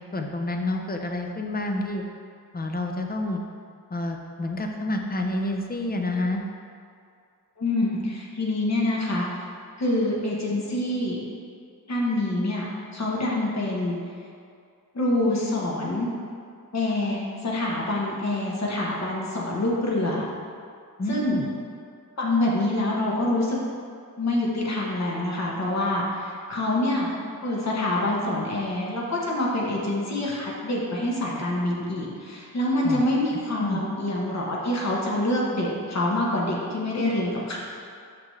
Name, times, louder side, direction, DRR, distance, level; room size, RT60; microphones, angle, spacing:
voice 1, 0.0-2.0 2.5-3.4 3.9-6.4 21.0-21.5 32.8-33.0 33.6-33.8, left 1 dB, 25° left, 3 dB, 0.5 m, -28 dB
voice 2, 7.6-9.3 9.8-11.2 11.9-14.0 14.9-16.1 16.7-20.2 21.1-21.4 22.2-23.6 24.2-27.1 27.4-37.6, left 1 dB, 50° left, -4 dB, 1.1 m, -26 dB
6.2 x 5.9 x 3.2 m, 2.3 s
wide cardioid pair, 150°, 34 cm